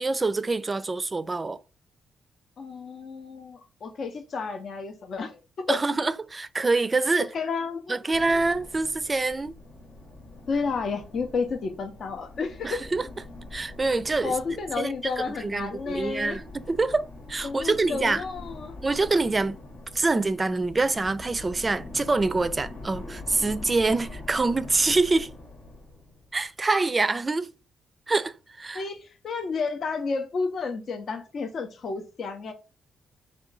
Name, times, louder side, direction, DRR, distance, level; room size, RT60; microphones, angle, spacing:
voice 1, 0.0-1.6 5.7-7.3 7.9-9.5 12.6-13.1 13.5-14.3 14.8-14.9 15.4-18.2 18.8-19.6 19.9-25.3 26.3-27.5 28.1-28.8, right 3 dB, 30° right, 0.4 m, -25 dB
voice 2, 2.6-5.4 5.7-5.8 7.2-8.4 10.5-12.8 14.2-16.4 17.4-18.7 28.7-32.5, left 4 dB, 60° left, 0.5 m, -31 dB
sound 1, 8.1-26.5, left 2 dB, 85° left, 1.1 m, -43 dB
3.6 x 2.2 x 3.8 m
cardioid pair, 70°, 0 cm